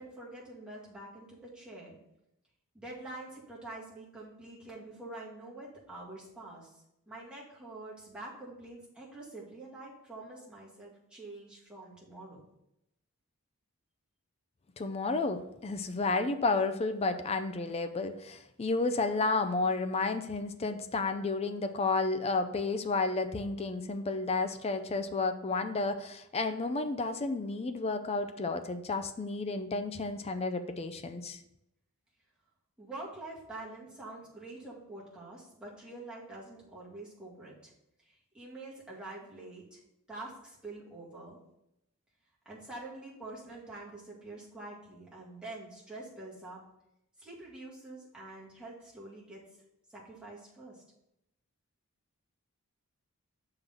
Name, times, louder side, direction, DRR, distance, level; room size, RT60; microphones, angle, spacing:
voice 1, 0.0-2.0 2.7-12.5 32.8-37.7 38.1-39.8 40.1-41.4 42.5-46.6 47.2-49.4 49.9-50.8, right 2 dB, 5° right, -6 dB, 2.0 m, -46 dB
voice 2, 14.8-31.4, left 3 dB, 30° left, 9 dB, 0.4 m, -31 dB
6.6 x 3.8 x 5.9 m, 0.82 s
head